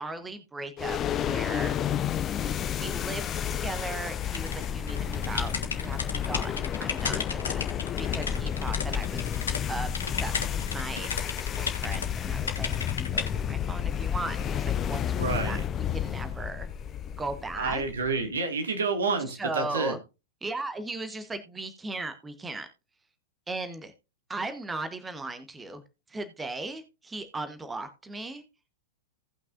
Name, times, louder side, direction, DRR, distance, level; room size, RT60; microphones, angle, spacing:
voice 1, 0.0-1.8 2.8-7.6 8.0-9.3 9.7-15.6 15.9-16.7 17.2-17.8 19.3-20.0 20.4-22.7 23.5-23.9 24.3-25.8 26.1-28.4, right 2 dB, 10° right, 1.1 m, -37 dB
sound 1, 0.8-18.1, left 9 dB, 25° left, 0.6 m, -31 dB
sound 2, 4.3-9.6 9.9-12.1 12.5-13.3, left 5 dB, 70° left, 1.6 m, -34 dB
voice 2, 15.2-15.6 17.6-19.9, right 4 dB, 70° right, 2.1 m, -29 dB
17.5 x 6.0 x 2.5 m
figure-of-eight pair, 95°, 0 cm